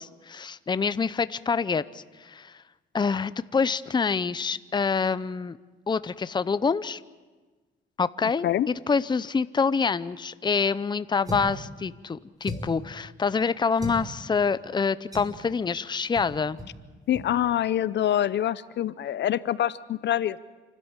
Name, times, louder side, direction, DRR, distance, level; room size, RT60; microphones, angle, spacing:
voice 1, 0.0-2.5 2.9-5.6 5.9-7.0 8.0-16.6, left 5 dB, 20° left, 15 dB, 0.6 m, -26 dB
sound 1, 11.2-11.6 12.4-12.8 13.8-14.0 15.1-15.4 16.1-16.3 16.6-16.7 17.1-17.3, left 1 dB, 20° right, 4.9 m, -35 dB
voice 2, 17.1-20.4, left 11 dB, 60° left, 17 dB, 0.6 m, -25 dB
28.0 x 12.5 x 8.8 m, 1.3 s
cardioid pair, 90°, 20 cm